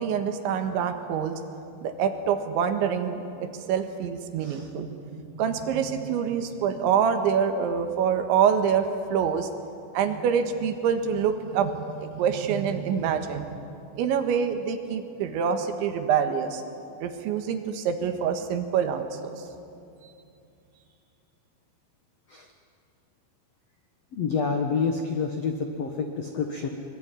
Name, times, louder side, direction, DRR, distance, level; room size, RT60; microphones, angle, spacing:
voice 1, 0.0-1.4 1.8-9.5 9.9-13.6 14.0-16.6 17.0-19.3, right 7 dB, 80° right, 7 dB, 3.8 m, -26 dB
voice 2, 24.1-26.7, left 5 dB, 75° left, 4 dB, 1.5 m, -28 dB
23.5 x 23.0 x 9.7 m, 2.6 s
omnidirectional pair, 5.3 m